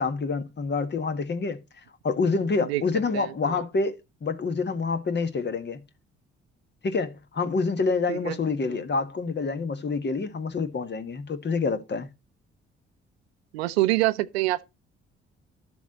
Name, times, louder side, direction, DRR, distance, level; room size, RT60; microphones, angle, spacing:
voice 1, 0.0-1.6 2.0-3.9 4.2-5.8 6.8-12.1, left 4 dB, 35° left, 1.5 m, -27 dB
voice 2, 3.1-3.6 8.1-8.4 8.7-8.8 13.5-14.6, right 17 dB, 75° right, 0.7 m, -26 dB
12.5 x 7.1 x 4.0 m
figure-of-eight pair, 45°, 31 cm